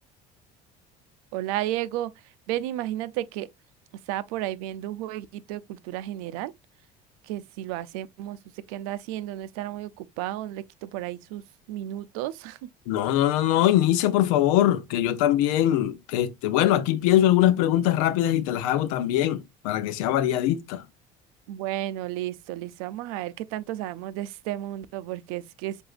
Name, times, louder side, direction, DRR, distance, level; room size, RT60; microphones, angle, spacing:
voice 1, 1.3-2.1 2.5-3.5 4.1-6.5 7.3-8.4 8.7-11.4 11.7-12.7 21.5-25.8, right 14 dB, 90° right, 0.6 m, -33 dB
voice 2, 12.9-20.8, left 12 dB, 90° left, 0.7 m, -22 dB
7.7 x 2.7 x 2.5 m
supercardioid pair, 110°, 18 cm